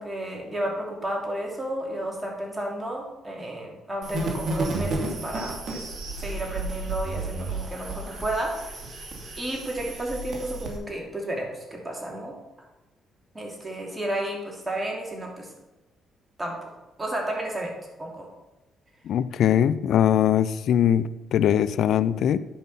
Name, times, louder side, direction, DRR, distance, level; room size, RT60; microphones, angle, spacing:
voice 1, 0.0-5.9 6.2-8.5 9.4-12.3 13.3-15.5 16.4-16.6 17.0-17.7 18.0-18.3, right 1 dB, 20° right, -1 dB, 2.7 m, -32 dB
sound 1, 4.0-10.8, right 2 dB, 55° right, 2.3 m, -32 dB
voice 2, 19.0-22.4, left 10 dB, 70° left, 16 dB, 0.4 m, -21 dB
10.5 x 5.4 x 5.5 m, 1.0 s
cardioid pair, 90°, 0 cm